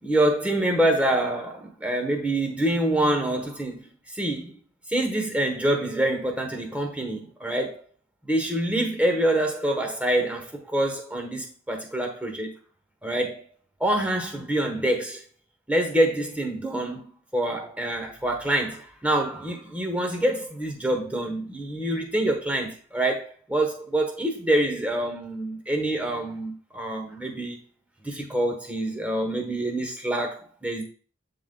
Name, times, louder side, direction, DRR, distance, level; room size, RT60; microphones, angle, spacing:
voice 1, 0.0-4.6 4.9-7.8 8.2-12.5 13.0-13.4 13.8-15.2 15.7-27.6 28.0-30.8, right 1 dB, 5° right, 2 dB, 1.0 m, -26 dB
11.0 x 3.8 x 2.2 m, 0.38 s
head